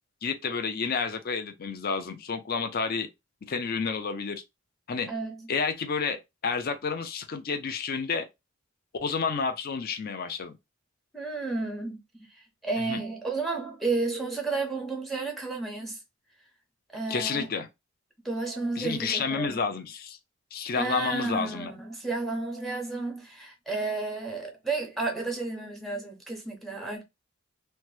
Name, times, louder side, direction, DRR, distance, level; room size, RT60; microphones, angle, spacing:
voice 1, 0.2-3.1 3.5-4.4 4.9-5.1 5.5-6.2 6.4-8.3 9.0-10.5 12.8-13.0 17.1-17.7 18.8-20.2 20.5-21.7, left 5 dB, 45° left, 0.4 m, -30 dB
voice 2, 5.1-5.5 11.1-12.0 12.6-16.0 16.9-17.5 18.2-19.6 20.7-27.0, right 3 dB, ahead, 0.7 m, -32 dB
2.8 x 2.2 x 3.2 m
head